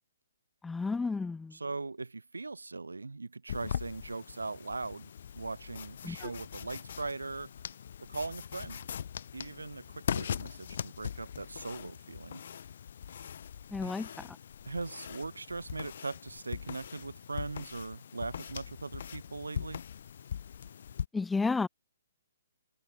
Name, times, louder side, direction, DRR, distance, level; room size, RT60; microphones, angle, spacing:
voice 1, 0.6-1.5 6.0-6.3 13.7-14.3 21.1-21.7, left 4 dB, 5° left, 0.4 m, -32 dB
voice 2, 1.5-7.5 8.0-8.9 9.3-12.4 13.8-13.9 14.6-19.8, right 3 dB, 75° right, 2.9 m, -40 dB
sound 1, 3.5-21.1, left 8 dB, 50° left, 4.5 m, -41 dB
figure-of-eight pair, 130°, 0 cm